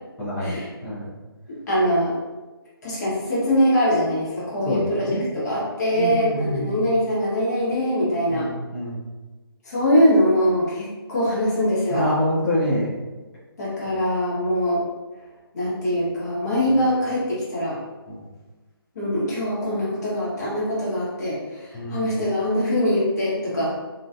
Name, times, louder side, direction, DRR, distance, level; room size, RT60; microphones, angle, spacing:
voice 1, 0.2-1.1 4.6-4.8 5.1-5.3 5.9-6.8 8.3-9.0 11.9-12.9 18.1-18.2 21.7-22.0, equal, 5° left, -14 dB, 0.4 m, -26 dB
voice 2, 1.5-2.2 2.8-8.5 9.6-12.0 13.6-14.8 15.5-17.8 18.9-23.7, equal, 45° left, -7 dB, 1.1 m, -22 dB
2.4 x 2.3 x 2.5 m, 1.2 s
figure-of-eight pair, 150°, 13 cm